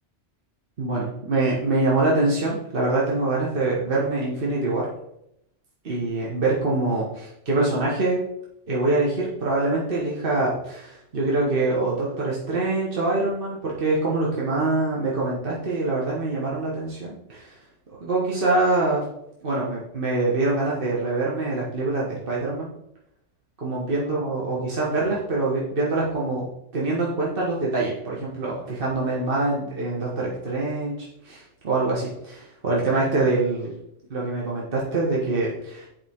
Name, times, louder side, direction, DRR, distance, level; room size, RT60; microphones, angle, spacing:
voice 1, 0.8-4.9 5.8-8.2 8.7-17.5 18.0-19.0 19.4-22.7 23.6-26.4 26.7-33.7 34.1-35.9, right 2 dB, 50° right, -5 dB, 1.7 m, -24 dB
10.5 x 5.2 x 3.7 m, 0.80 s
omnidirectional pair, 1.2 m